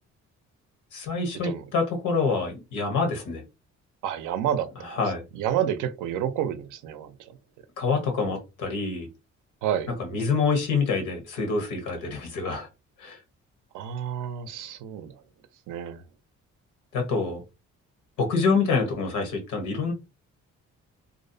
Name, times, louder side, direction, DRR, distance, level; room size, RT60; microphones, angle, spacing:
voice 1, 0.9-3.4 4.8-5.2 7.8-9.1 10.0-12.7 13.0-13.2 16.9-17.4 18.2-19.9, left 4 dB, 85° left, 1.0 m, -26 dB
voice 2, 4.0-4.9 5.3-7.1 9.6-9.9 13.7-15.1 15.7-16.0, right 9 dB, 85° right, 0.5 m, -29 dB
2.6 x 2.0 x 2.6 m
cardioid pair, 90°, 30 cm